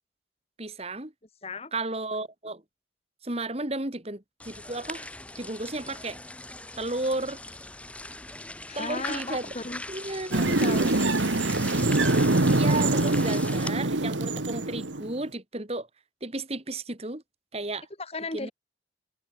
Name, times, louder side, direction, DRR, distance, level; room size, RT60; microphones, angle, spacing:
voice 1, 0.6-1.1 1.7-2.6 3.2-5.1 5.4-6.2 6.8-7.4 8.8-9.5 9.9-10.6 12.5-15.9 16.2-17.2 17.5-17.9 18.3-18.5, right 2 dB, 30° right, 2.1 m, -33 dB
voice 2, 1.4-1.7 8.7-9.8 10.4-11.2 18.0-18.5, left 3 dB, 30° left, 2.3 m, -36 dB
sound 1, 4.4-13.7, left 2 dB, 5° left, 1.1 m, -40 dB
sound 2, 10.3-15.2, right 2 dB, 75° right, 1.7 m, -24 dB
head